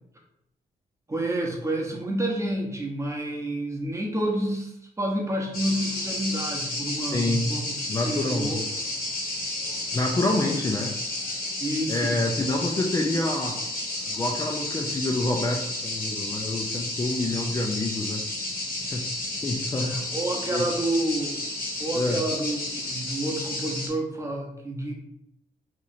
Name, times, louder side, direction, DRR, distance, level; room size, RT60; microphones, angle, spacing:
voice 1, 1.1-7.7 8.0-8.6 11.6-12.2 19.7-21.4 21.8-24.9, right 1 dB, 20° right, -1 dB, 0.8 m, -29 dB
sound 1, 5.5-23.9, left 2 dB, 70° left, 1.1 m, -32 dB
voice 2, 7.1-7.5 7.9-8.7 9.9-10.9 11.9-13.6 14.1-18.2 18.9-19.1 19.4-20.0 20.5-20.7 21.9-22.2, left 2 dB, 20° left, 0 dB, 0.4 m, -27 dB
3.0 x 2.5 x 4.0 m, 0.78 s
cardioid pair, 110°, 16 cm